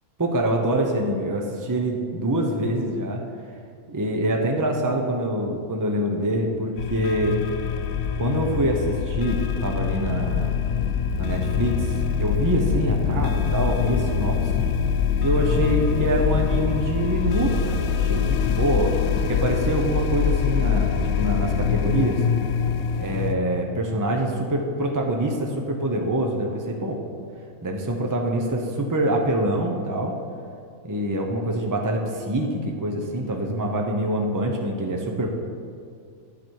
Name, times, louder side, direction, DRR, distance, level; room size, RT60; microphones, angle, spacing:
voice 1, 0.2-3.2 3.9-7.4 8.2-10.5 11.2-14.5 15.2-19.0 19.3-22.2 23.0-27.0 27.6-30.2 30.8-35.3, right 1 dB, 30° right, 1 dB, 0.3 m, -25 dB
sound 1, 6.8-23.4, left 7 dB, 80° left, 1.0 m, -24 dB
10.0 x 7.4 x 4.6 m, 2.3 s
omnidirectional pair, 1.5 m